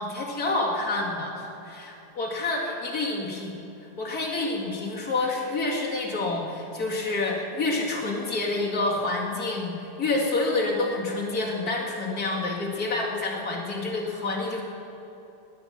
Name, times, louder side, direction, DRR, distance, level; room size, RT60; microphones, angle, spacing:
voice 1, 0.0-3.5 4.0-14.6, left 2 dB, 60° left, -3 dB, 2.8 m, -28 dB
19.5 x 10.0 x 5.9 m, 2.9 s
omnidirectional pair, 1.8 m